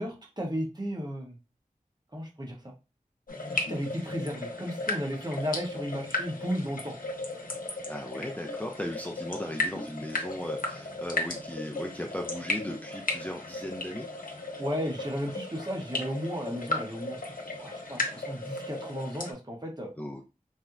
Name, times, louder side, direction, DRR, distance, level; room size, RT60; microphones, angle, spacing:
voice 1, 0.0-1.4 2.1-2.7 3.5-6.9 14.6-17.3 17.6-19.9, equal, 30° right, 0 dB, 0.9 m, -34 dB
sound 1, 3.3-19.3, left 2 dB, 75° left, 0.7 m, -35 dB
voice 2, 7.9-14.1 20.0-20.2, left 1 dB, 10° left, 2 dB, 0.4 m, -37 dB
4.1 x 2.1 x 2.4 m, 0.29 s
wide cardioid pair, 55°, 14 cm